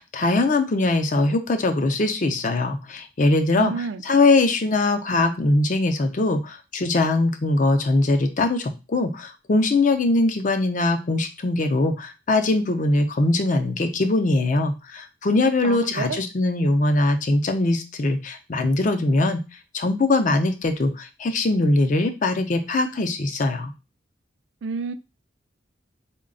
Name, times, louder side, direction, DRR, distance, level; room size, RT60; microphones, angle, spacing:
voice 1, 0.0-19.4 19.7-23.7, left 2 dB, 45° left, 0.5 m, -21 dB
voice 2, 3.6-4.0 15.6-16.2 24.6-24.9, right 4 dB, 75° right, 0.3 m, -29 dB
3.9 x 2.2 x 3.7 m
head